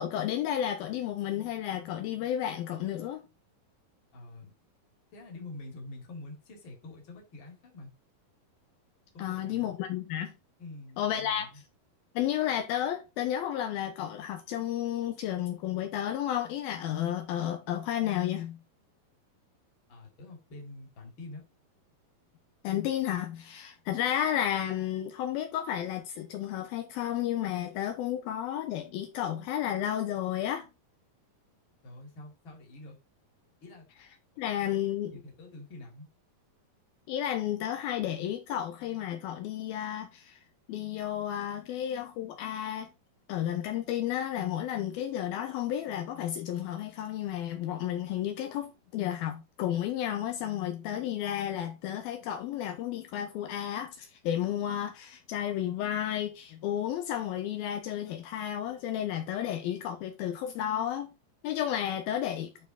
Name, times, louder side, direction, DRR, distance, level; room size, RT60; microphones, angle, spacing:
voice 1, 0.0-3.2 9.2-10.3 11.0-11.5 12.2-18.6 22.6-30.7 34.4-35.1 37.1-40.4 40.7-42.9 43.3-61.1 61.4-62.5, left 11 dB, 80° left, 2.6 m, -32 dB
voice 2, 4.1-4.5 5.1-7.9 9.1-9.7 10.6-11.6 19.9-21.4 31.8-33.0 33.6-33.9 34.7-34.8 35.1-36.1, left 2 dB, 35° left, 2.9 m, -46 dB
11.0 x 4.6 x 3.9 m
omnidirectional pair, 4.5 m